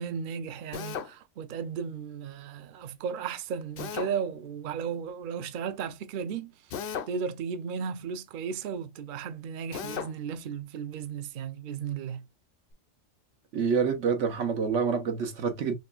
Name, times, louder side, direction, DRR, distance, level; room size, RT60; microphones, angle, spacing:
voice 1, 0.0-6.5 7.1-12.3, right 6 dB, 55° right, 0.6 m, -35 dB
Drill, 0.7-1.1 3.8-4.1 6.7-7.2 9.7-10.1, left 7 dB, 60° left, 0.7 m, -35 dB
voice 2, 13.5-15.7, right 6 dB, 90° right, 1.2 m, -27 dB
4.2 x 3.0 x 2.3 m
omnidirectional pair, 1.2 m